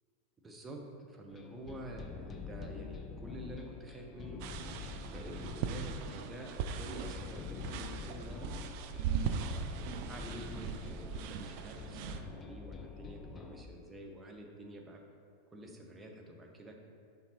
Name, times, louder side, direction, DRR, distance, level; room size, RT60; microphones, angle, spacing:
voice 1, 0.4-4.4 5.1-8.5 9.0-9.8 10.1-15.0 15.5-16.8, right 1 dB, 15° right, 1 dB, 0.8 m, -48 dB
sound 1, 1.3-13.7, left 5 dB, 25° left, 0.4 m, -46 dB
sound 2, 4.4-12.2, right 7 dB, 45° right, 0.4 m, -39 dB
7.2 x 5.3 x 2.9 m, 2.2 s
figure-of-eight pair, 90°, 0 cm